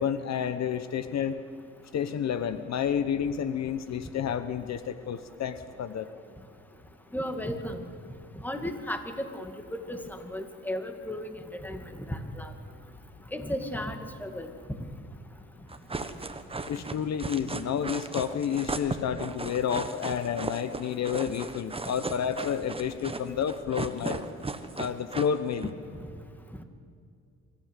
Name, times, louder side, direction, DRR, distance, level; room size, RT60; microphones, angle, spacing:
voice 1, 0.0-1.4 1.9-6.1 16.6-24.2 24.8-25.7, left 8 dB, 60° left, 11 dB, 1.0 m, -30 dB
voice 2, 7.1-7.9 8.4-11.4 11.6-12.5 13.3-14.5 25.6-25.7, equal, 5° left, 6 dB, 2.1 m, -35 dB
sound 1, 15.7-25.7, right 3 dB, 20° right, 1.2 m, -36 dB
25.0 x 14.5 x 8.2 m, 2.3 s
cardioid pair, 90°, 30 cm